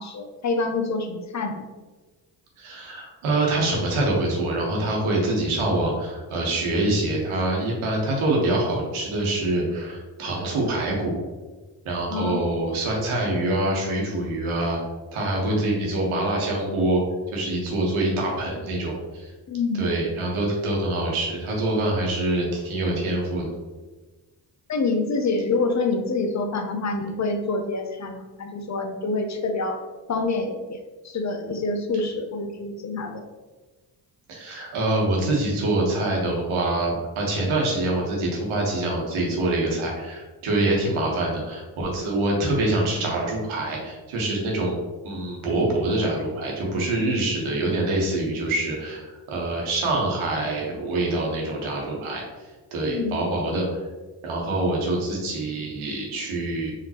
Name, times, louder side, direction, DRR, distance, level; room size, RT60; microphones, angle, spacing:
voice 1, 0.0-1.6 12.1-12.4 19.5-19.9 24.7-29.8 30.1-30.8 31.0-33.2 52.9-53.2, left 3 dB, 35° left, 5 dB, 0.7 m, -26 dB
voice 2, 2.6-11.2 11.8-14.8 15.1-17.0 17.3-19.3 19.8-23.4 34.3-44.8 45.0-52.2 52.7-53.7 54.2-56.7, right 2 dB, 70° right, -2 dB, 1.3 m, -25 dB
4.9 x 2.9 x 2.9 m, 1.3 s
hypercardioid pair, 45°, 50 cm